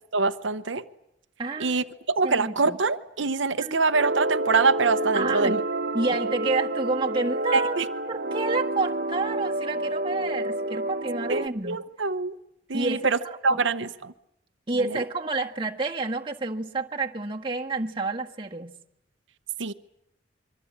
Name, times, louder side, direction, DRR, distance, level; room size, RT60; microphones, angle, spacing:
voice 1, 0.1-0.8 1.6-5.6 7.5-7.9 11.3-12.4 12.7-13.2 13.4-14.1 14.9-15.0 19.6-19.7, right 4 dB, 90° right, 9 dB, 0.9 m, -24 dB
voice 2, 1.4-1.8 2.2-2.8 3.6-3.8 5.1-5.6 5.9-7.8 8.1-11.8 12.7-13.6 14.7-18.7, right 3 dB, 30° right, 1 dB, 1.7 m, -29 dB
sound 1, 3.9-11.5, right 2 dB, 55° right, 1.4 m, -29 dB
25.5 x 23.5 x 8.7 m, 0.83 s
head